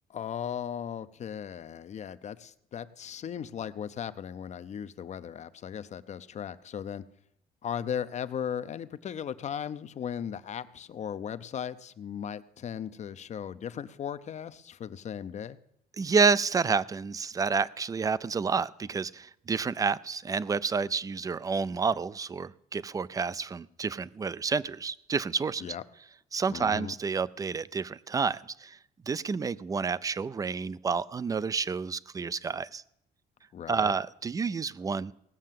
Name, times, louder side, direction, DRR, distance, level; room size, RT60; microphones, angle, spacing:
voice 1, 0.1-7.0 7.6-15.6 25.6-25.8 26.5-26.9 33.5-33.9, left 8 dB, 45° left, 14 dB, 0.6 m, -37 dB
voice 2, 16.0-25.8 26.3-28.8 29.1-32.8 33.7-35.1, right 5 dB, 20° right, 19 dB, 0.4 m, -29 dB
18.0 x 6.6 x 7.5 m, 0.78 s
cardioid pair, 110°, 17 cm